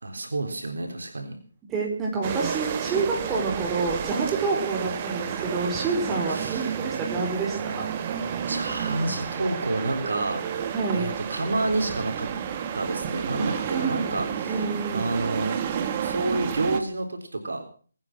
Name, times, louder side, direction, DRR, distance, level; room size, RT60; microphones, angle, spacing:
voice 1, 0.0-1.4 6.3-6.7 8.5-10.4 10.9-12.3 12.7-14.6 14.9-15.6 16.0-17.6, right 2 dB, 75° right, 4 dB, 3.9 m, -29 dB
voice 2, 1.7-7.9 10.7-11.1 13.4-15.1, right 4 dB, 10° right, -1 dB, 4.4 m, -28 dB
sound 1, 2.2-16.8, right 8 dB, 30° right, 1.6 m, -31 dB
23.0 x 9.8 x 6.1 m, 0.43 s
figure-of-eight pair, 155°, 0 cm